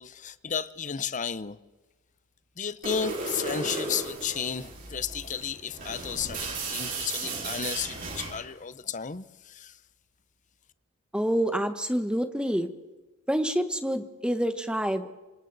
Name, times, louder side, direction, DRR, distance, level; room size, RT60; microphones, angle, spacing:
voice 1, 0.0-1.6 2.6-9.8, left 7 dB, 35° left, 0.7 m, -33 dB
sound 1, 2.8-8.4, right 3 dB, 40° right, 4.5 m, -35 dB
voice 2, 11.1-12.7 13.3-15.1, equal, 5° right, 1.2 m, -27 dB
26.5 x 25.5 x 4.0 m
head